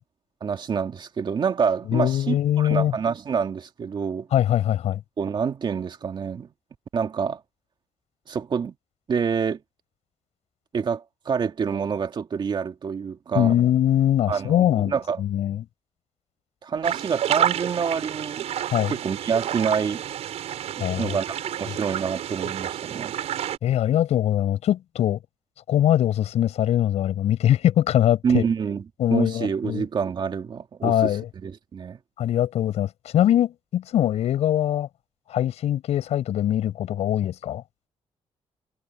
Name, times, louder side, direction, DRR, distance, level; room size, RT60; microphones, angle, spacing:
voice 1, 0.4-4.3 5.2-6.5 6.9-7.4 8.3-8.7 9.1-9.6 10.7-13.5 14.3-15.2 16.6-18.4 18.9-20.0 20.8-23.1 28.2-28.8 29.1-31.2 31.4-32.0, right 6 dB, 45° right, 2.3 m, -27 dB
voice 2, 1.9-2.9 4.3-5.0 13.3-15.6 18.7-18.9 20.8-21.2 23.6-25.2 25.7-28.4 29.0-29.9 30.8-31.3 32.2-34.9 35.3-37.6, left 11 dB, 80° left, 7.5 m, -22 dB
sound 1, 16.8-23.6, right 11 dB, 80° right, 6.2 m, -29 dB
cardioid pair, 125°, 11 cm